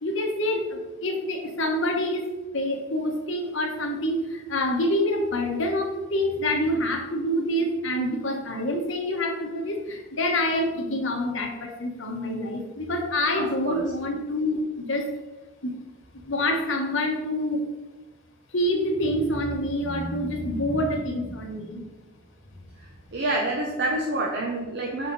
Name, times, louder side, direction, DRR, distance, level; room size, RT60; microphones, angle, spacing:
voice 1, 0.0-2.3 2.5-14.6 14.9-15.1 15.6-15.7 16.3-17.6 18.5-21.8, left 1 dB, 65° left, 3 dB, 1.1 m, -26 dB
voice 2, 13.3-13.8 23.1-25.1, right 2 dB, 55° right, -2 dB, 0.7 m, -28 dB
5.6 x 4.9 x 3.9 m, 1.1 s
head